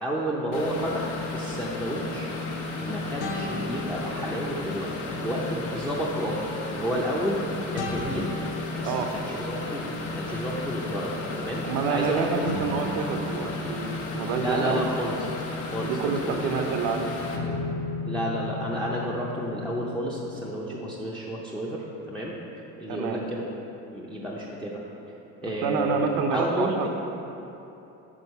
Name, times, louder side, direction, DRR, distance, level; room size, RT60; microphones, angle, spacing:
voice 1, 0.0-2.3 2.8-7.4 7.7-8.3 8.7-9.8 10.2-12.5 14.3-15.3 15.6-16.7 18.0-22.3 22.8-23.4 23.9-24.8 25.4-26.9, equal, 5° left, -6 dB, 0.5 m, -31 dB
sound 1, 0.5-17.4, left 2 dB, 65° left, 1.0 m, -34 dB
sound 2, 3.2-4.9 7.8-10.1 12.4-16.8 17.3-20.6, left 3 dB, 50° left, 0.7 m, -37 dB
voice 2, 11.6-14.8 15.8-17.1 20.7-20.9 22.9-23.2 25.6-26.9, right 5 dB, 75° right, 4 dB, 0.8 m, -28 dB
6.3 x 4.5 x 5.5 m, 3.0 s
cardioid pair, 135°, 32 cm